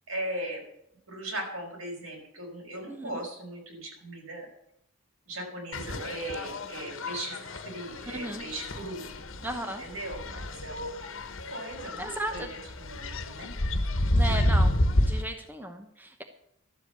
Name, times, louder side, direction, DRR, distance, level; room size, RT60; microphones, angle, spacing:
voice 1, 0.1-0.6 1.1-4.5 5.3-9.0 9.8-11.2 11.5-13.5, right 1 dB, 80° right, 0 dB, 5.2 m, -38 dB
sound 1, 5.7-15.2, left 1 dB, 70° left, 1.3 m, -30 dB
voice 2, 8.1-8.4 9.4-9.8 12.0-12.5 14.1-16.2, right 1 dB, 10° right, 5 dB, 1.0 m, -35 dB
12.5 x 8.0 x 8.2 m, 0.76 s
head